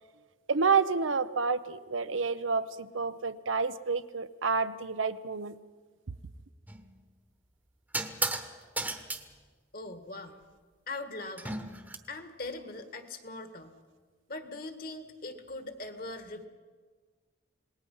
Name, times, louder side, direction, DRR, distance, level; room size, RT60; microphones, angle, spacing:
voice 1, 0.5-5.6, right 5 dB, 90° right, 13 dB, 0.8 m, -29 dB
sound 1, 6.7-6.9 7.9-8.5 8.8-9.2 11.4-12.0, right 2 dB, 10° right, 1.1 m, -33 dB
voice 2, 9.7-10.4 10.9-11.6 12.1-13.7 14.3-16.5, left 2 dB, 50° left, 7 dB, 1.8 m, -41 dB
27.5 x 19.5 x 5.6 m, 1.4 s
head